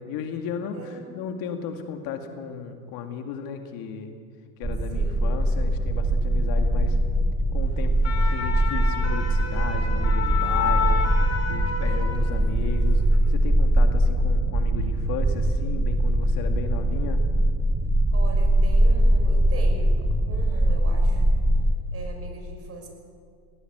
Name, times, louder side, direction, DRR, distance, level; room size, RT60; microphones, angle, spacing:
voice 1, 0.0-4.1 4.6-7.0 7.5-11.0 11.5-17.2, left 7 dB, 50° left, 6 dB, 2.2 m, -35 dB
voice 2, 0.7-1.2 4.9-5.4 10.5-11.1 11.8-12.8 18.1-21.3 21.9-22.9, right 3 dB, 30° right, 3 dB, 5.5 m, -41 dB
sound 1, 4.6-21.8, right 1 dB, 10° right, 1.1 m, -22 dB
sound 2, 7.8-12.6 12.9-13.2, left 7 dB, 35° left, 3.2 m, -30 dB
19.5 x 17.5 x 8.1 m, 2.2 s
hypercardioid pair, 90°, 45 cm